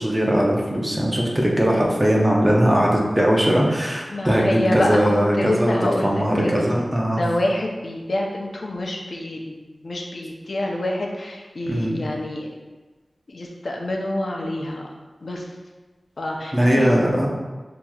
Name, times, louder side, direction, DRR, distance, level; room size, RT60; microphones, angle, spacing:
voice 1, 0.0-5.8 6.0-7.2 11.7-12.0 16.5-17.3, equal, 20° right, -2 dB, 0.9 m, -20 dB
voice 2, 4.1-6.7 7.2-9.6 9.8-12.5 13.3-14.8 15.2-15.4 16.2-16.9, left 1 dB, 70° left, 0 dB, 0.6 m, -26 dB
6.6 x 2.9 x 2.4 m, 1.3 s
wide cardioid pair, 55°, 0 cm